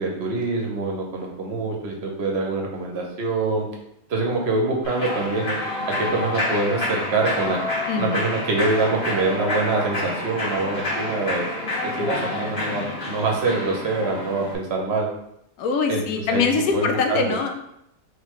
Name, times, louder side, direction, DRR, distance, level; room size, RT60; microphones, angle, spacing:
voice 1, 0.0-3.7 4.1-5.6 5.9-7.6 7.9-11.5 11.8-15.1 15.9-17.4, right 3 dB, 55° right, 1 dB, 0.8 m, -25 dB
Human voice / Clapping / Cheering, 4.8-14.6, left 2 dB, 60° left, 1.9 m, -28 dB
voice 2, 7.9-8.2 12.0-12.6 15.6-17.5, left 5 dB, 85° left, 4 dB, 1.1 m, -24 dB
3.6 x 3.3 x 3.0 m, 0.78 s
omnidirectional pair, 1.5 m